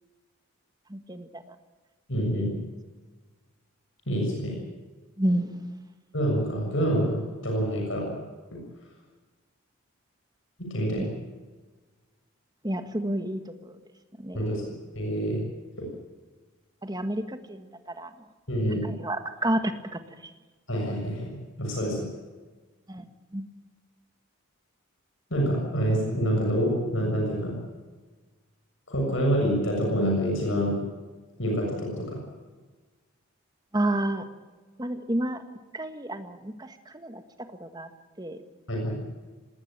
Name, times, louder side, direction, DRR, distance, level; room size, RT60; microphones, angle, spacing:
voice 1, 0.9-1.4 5.2-5.5 11.0-11.1 12.6-13.7 14.2-14.5 16.8-18.1 18.8-20.0 22.9-23.1 23.3-23.4 33.7-34.2 34.8-35.4 35.7-37.2 37.6-37.9 38.2-38.4, right 1 dB, 20° right, 8 dB, 1.6 m, -30 dB
voice 2, 2.1-2.5 4.1-4.6 6.1-8.1 8.5-8.6 10.6-11.1 14.3-14.6 14.9-15.4 15.8-15.9 18.5-18.8 20.7-22.0 25.3-27.5 28.9-30.7 31.4-32.2 38.7-39.0, equal, 60° left, -1 dB, 6.9 m, -27 dB
19.0 x 19.0 x 8.9 m, 1.3 s
head